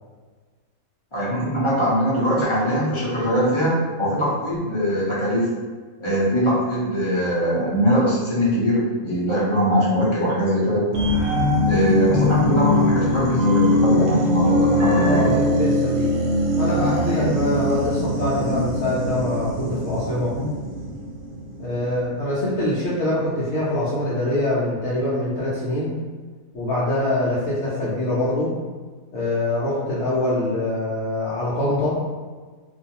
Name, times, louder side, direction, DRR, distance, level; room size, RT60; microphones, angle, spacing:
voice 1, 1.1-5.5 6.0-10.9 11.6-15.4 17.0-17.2 18.5-18.6 20.4-20.5, equal, 35° left, -8 dB, 0.4 m, -22 dB
sound 1, 10.9-22.0 22.4-22.5, left 1 dB, 85° right, 1.1 m, -21 dB
voice 2, 15.0-16.1 16.6-20.3 21.6-26.0 26.5-28.5 29.1-32.0, left 1 dB, 60° left, -8 dB, 0.8 m, -24 dB
2.5 x 2.4 x 2.7 m, 1.4 s
omnidirectional pair, 1.5 m